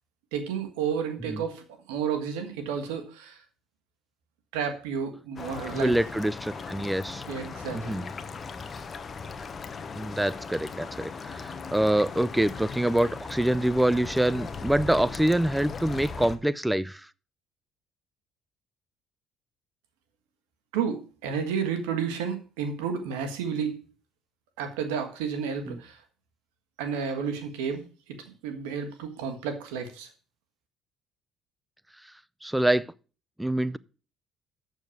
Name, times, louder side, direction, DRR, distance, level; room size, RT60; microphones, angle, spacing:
voice 1, 0.3-3.4 4.5-5.9 7.3-8.0 20.7-23.8 24.6-26.0 26.8-27.8 28.1-30.1, right 7 dB, 90° right, 1.5 m, -31 dB
sound 1, 5.4-16.4, left 5 dB, 40° left, 1.0 m, -38 dB
voice 2, 5.7-7.2 7.7-8.1 9.9-17.1 25.7-25.8 32.4-32.9 33.4-33.8, right 1 dB, 5° right, 0.5 m, -25 dB
6.8 x 6.3 x 7.1 m
supercardioid pair, 70°, 0 cm